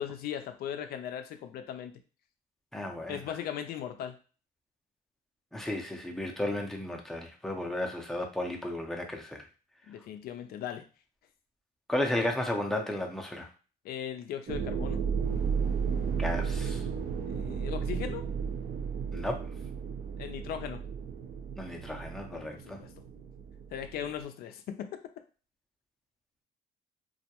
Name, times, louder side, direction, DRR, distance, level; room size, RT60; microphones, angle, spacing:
voice 1, 0.0-1.9 3.1-4.2 9.9-10.8 13.8-15.0 17.3-18.3 20.2-20.8 22.3-22.9 23.7-25.0, left 9 dB, 65° left, 7 dB, 0.4 m, -38 dB
voice 2, 2.7-3.3 5.5-9.4 11.9-13.5 16.2-16.8 19.1-19.4 21.6-22.8, left 1 dB, ahead, 1 dB, 0.5 m, -33 dB
sound 1, 14.5-24.2, right 6 dB, 60° right, 0.5 m, -34 dB
2.3 x 2.1 x 2.8 m, 0.36 s
cardioid pair, 110°, 17 cm